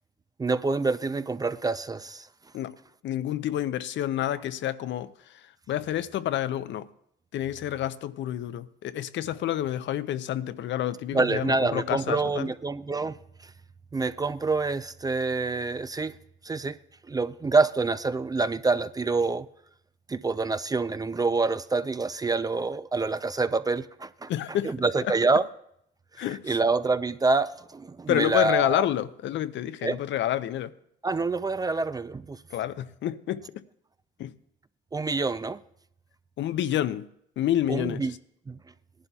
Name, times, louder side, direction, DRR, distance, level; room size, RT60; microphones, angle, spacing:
voice 1, 0.4-2.3 11.1-13.2 13.9-16.2 16.4-16.8 17.1-19.5 20.1-25.5 26.4-28.9 29.8-30.0 31.0-32.4 34.9-35.6 37.7-38.1 38.5-38.6, right 3 dB, 20° right, 0.3 m, -26 dB
voice 2, 3.0-5.1 5.7-6.9 7.3-12.5 24.3-25.1 26.2-26.6 28.1-30.7 32.5-33.6 34.2-34.3 36.4-37.1 37.4-38.1, left 12 dB, 70° left, 0.5 m, -29 dB
18.5 x 11.0 x 2.3 m
cardioid pair, 90°, 20 cm